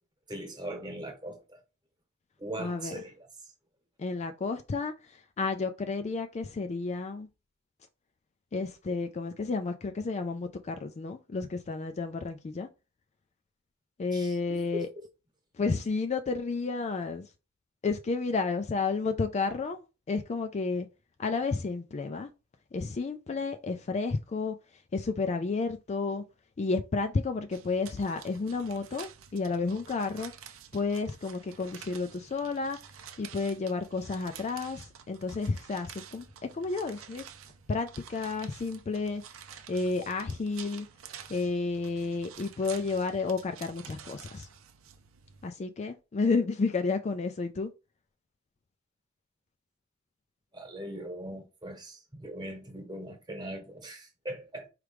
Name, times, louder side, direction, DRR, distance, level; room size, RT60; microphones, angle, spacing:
voice 1, 0.3-1.6 2.4-3.5 14.1-14.4 14.7-15.1 50.5-54.7, right 1 dB, 20° right, 1.2 m, -40 dB
voice 2, 2.6-3.0 4.0-7.3 8.5-12.7 14.0-14.9 15.6-17.3 17.8-20.9 21.2-22.3 22.7-24.6 24.9-26.2 26.6-30.3 30.7-32.8 33.2-36.2 36.5-37.2 37.7-39.2 39.7-40.9 41.3-44.5 45.4-47.7, left 4 dB, 35° left, 0.4 m, -31 dB
sound 1, 27.5-45.5, right 8 dB, 85° right, 0.6 m, -50 dB
4.8 x 3.1 x 3.3 m
head